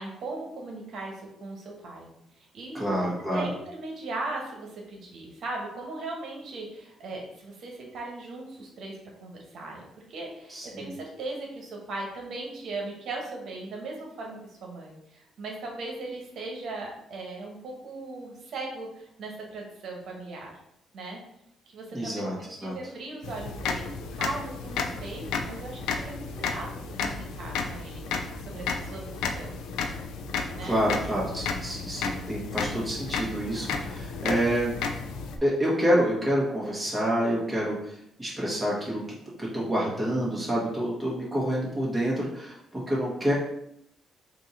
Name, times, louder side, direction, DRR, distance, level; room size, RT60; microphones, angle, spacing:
voice 1, 0.0-2.1 2.4-3.0 3.3-20.5 20.9-21.2 21.7-29.5 30.5-30.8, right 2 dB, 65° right, 0 dB, 1.1 m, -38 dB
voice 2, 2.7-3.4 10.5-10.9 21.9-22.4 22.6-22.7 30.6-34.7 35.4-39.0 39.4-43.3, equal, 5° right, -6 dB, 1.6 m, -28 dB
sound 1, 23.2-35.4, left 4 dB, 85° left, 0.4 m, -33 dB
3.6 x 2.7 x 4.2 m, 0.77 s
cardioid pair, 95°, 0 cm